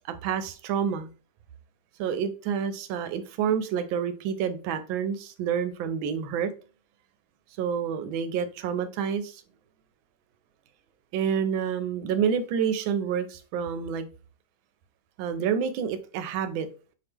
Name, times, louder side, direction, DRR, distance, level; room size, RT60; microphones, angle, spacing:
voice 1, 0.0-1.1 2.0-6.5 7.6-9.4 11.1-14.1 15.2-16.7, right 7 dB, 90° right, 11 dB, 1.4 m, -28 dB
4.5 x 2.8 x 3.4 m, 0.36 s
omnidirectional pair, 2.1 m